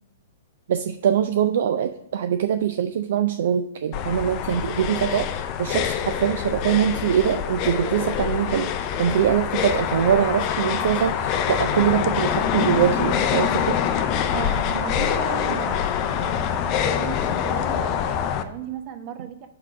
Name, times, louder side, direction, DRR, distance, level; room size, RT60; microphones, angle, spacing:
voice 1, 0.7-8.7 9.0-13.8, right 9 dB, 55° right, 8 dB, 0.4 m, -23 dB
sound 1, 3.9-18.4, left 8 dB, 35° left, 0.5 m, -25 dB
voice 2, 14.3-16.3 16.8-19.5, right 9 dB, 35° right, 8 dB, 0.8 m, -35 dB
5.7 x 4.7 x 6.1 m, 0.88 s
figure-of-eight pair, 110°, 0 cm